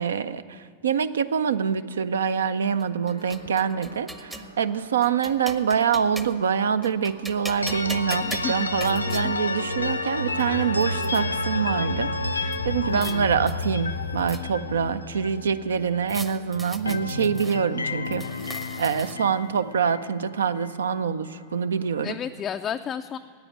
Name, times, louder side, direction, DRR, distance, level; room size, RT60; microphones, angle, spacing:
voice 1, 0.0-18.3 18.8-22.2, right 7 dB, 65° right, 14 dB, 0.4 m, -25 dB
sound 1, 2.8-4.5 5.0-6.5 6.8-9.3 10.0-10.1 10.4-11.2 12.5-13.2 13.5-14.7 16.1-17.6 18.1-19.4, right 1 dB, 10° right, 0.7 m, -40 dB
sound 2, 3.1-22.2, right 1 dB, 85° right, 0.8 m, -50 dB
sound 3, 7.6-16.4 16.6-20.8, left 3 dB, 80° left, 0.6 m, -30 dB
voice 2, 8.2-8.8 9.2-9.3 12.9-13.3 22.0-23.2, left 8 dB, 25° left, 6 dB, 0.3 m, -33 dB
9.7 x 9.3 x 9.9 m, 2.2 s
figure-of-eight pair, 90°, 0 cm